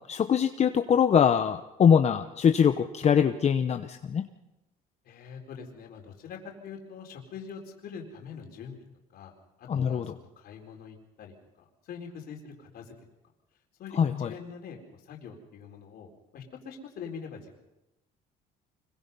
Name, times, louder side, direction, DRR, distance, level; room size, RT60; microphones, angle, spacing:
voice 1, 0.1-4.3 9.7-10.1 13.9-14.3, left 7 dB, 40° left, 8 dB, 0.9 m, -23 dB
voice 2, 5.0-8.8 9.1-9.3 9.6-12.9 13.8-17.6, left 6 dB, 65° left, 1 dB, 4.1 m, -44 dB
25.5 x 22.5 x 5.5 m, 0.96 s
cardioid pair, 110°, 17 cm